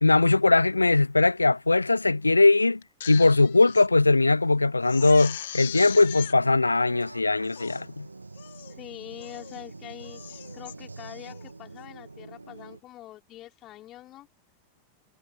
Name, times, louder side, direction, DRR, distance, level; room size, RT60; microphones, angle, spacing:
voice 1, 0.0-2.8 3.1-8.1, left 3 dB, 80° left, 0.6 m, -20 dB
Crying sobbing, 2.8-3.9 4.3-4.4 4.8-6.3 7.0-7.1 7.4-7.9 8.4-8.8 9.2-9.6 10.0-10.7 11.2-11.5, left 11 dB, 60° left, 1.8 m, -40 dB
sound 1, 5.8-12.8, right 3 dB, 80° right, 1.8 m, -45 dB
voice 2, 8.8-14.3, left 14 dB, 35° left, 4.3 m, -44 dB
figure-of-eight pair, 90°, 0 cm